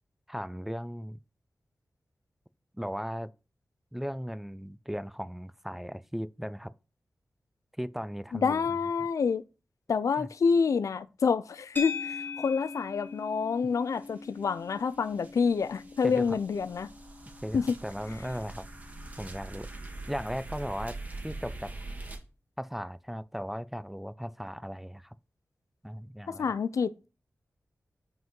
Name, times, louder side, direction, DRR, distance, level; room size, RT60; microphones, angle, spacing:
voice 1, 0.3-1.2 2.7-3.3 3.9-6.7 7.8-8.8 10.2-10.3 16.0-16.4 17.4-18.7 19.2-19.7 20.1-21.0 21.2-21.7 22.6-25.2 25.8-26.5, equal, 5° right, 0.3 m, -37 dB
voice 2, 8.3-9.4 9.9-16.9 17.5-17.7 26.3-27.1, left 5 dB, 90° left, 0.4 m, -28 dB
sound 1, 11.8-20.2, left 4 dB, 35° left, 1.3 m, -43 dB
sound 2, 14.0-14.1 14.4-22.2, right 2 dB, 30° right, 1.7 m, -43 dB
5.8 x 5.3 x 5.3 m
wide cardioid pair, 90°, 5 cm